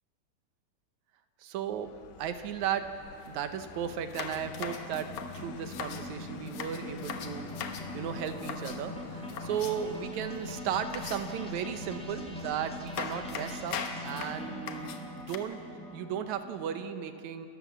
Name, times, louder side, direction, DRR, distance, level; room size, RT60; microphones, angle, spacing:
voice 1, 1.4-2.9 3.3-5.1 5.3-13.8 14.1-15.6 15.9-17.5, right 8 dB, 70° right, 9 dB, 2.1 m, -35 dB
Vehicle, 1.6-13.9, left 10 dB, 85° left, 2.3 m, -50 dB
sound 1, 2.6-16.8, left 1 dB, ahead, 1.6 m, -43 dB
sound 2, 3.2-3.3 3.6-3.7 4.1-6.1 6.5-7.9 8.3-8.8 9.3-10.0 10.9-11.5 12.4-12.5 12.9-15.4, left 6 dB, 65° left, 2.2 m, -40 dB
29.0 x 13.0 x 7.3 m, 2.5 s
omnidirectional pair, 3.8 m